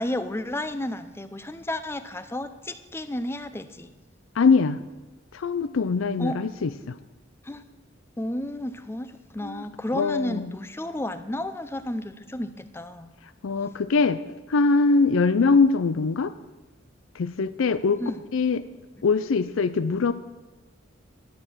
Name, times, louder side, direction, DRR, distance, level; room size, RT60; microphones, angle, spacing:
voice 1, 0.0-3.9 6.2-6.4 7.4-7.6 8.2-13.1 18.0-18.2, left 1 dB, 10° left, 11 dB, 0.5 m, -32 dB
voice 2, 4.4-4.8 5.3-6.9 9.4-9.6 9.9-10.5 13.4-14.2 14.5-16.3 17.2-18.0 18.3-18.6 19.0-20.1, left 4 dB, 90° left, 13 dB, 0.5 m, -22 dB
11.5 x 7.6 x 6.2 m, 1.1 s
head